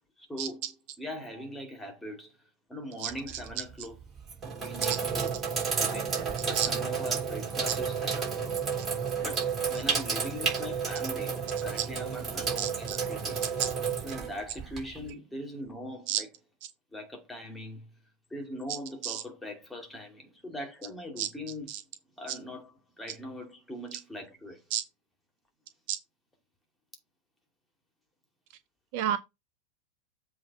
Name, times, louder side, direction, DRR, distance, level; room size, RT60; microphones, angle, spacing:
voice 1, 0.3-2.4 2.7-4.0 4.4-5.4 5.8-8.6 9.2-13.4 14.0-16.3 16.9-17.9 18.3-21.8 22.2-24.6, left 1 dB, 5° left, 2.6 m, -41 dB
Sink (filling or washing), 3.1-3.5 4.2-15.1, right 6 dB, 20° right, 3.5 m, -31 dB
voice 2, 12.6-13.0 13.6-13.7 16.1-16.2 19.0-19.2 21.2-21.3 21.7-21.8 24.7-24.8 25.9-26.0 28.9-29.2, right 11 dB, 45° right, 0.7 m, -30 dB
7.7 x 3.6 x 5.4 m
figure-of-eight pair, 90°, 0 cm